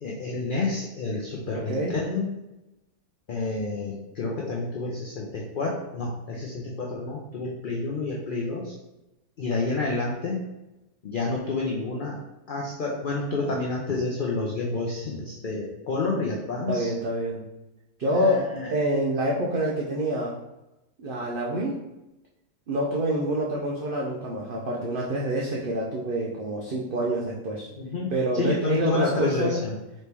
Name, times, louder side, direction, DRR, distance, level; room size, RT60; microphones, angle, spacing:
voice 1, 0.0-2.3 3.3-8.7 9.4-10.4 11.0-12.2 12.5-16.9 18.1-18.7 27.7-29.7, left 3 dB, 60° left, -3 dB, 0.5 m, -29 dB
voice 2, 16.7-17.4 18.0-20.3 21.0-21.8 22.7-27.7 28.1-29.6, right 1 dB, 60° right, -3 dB, 0.5 m, -27 dB
4.2 x 3.1 x 3.3 m, 0.96 s
omnidirectional pair, 1.6 m